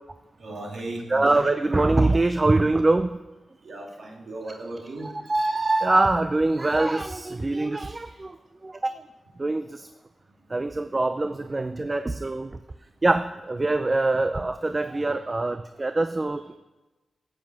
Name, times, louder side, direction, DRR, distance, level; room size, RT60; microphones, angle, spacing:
voice 1, 0.4-1.4 3.6-5.1 7.7-8.0 15.1-15.3, right 2 dB, 65° right, 0 dB, 2.2 m, -37 dB
voice 2, 1.1-3.1 5.0-8.4 8.6-8.9 9.4-9.9 10.5-12.5 13.0-16.6, right 2 dB, 30° right, 10 dB, 0.4 m, -24 dB
7.4 x 7.3 x 7.5 m, 1.1 s
cardioid pair, 50°, 0 cm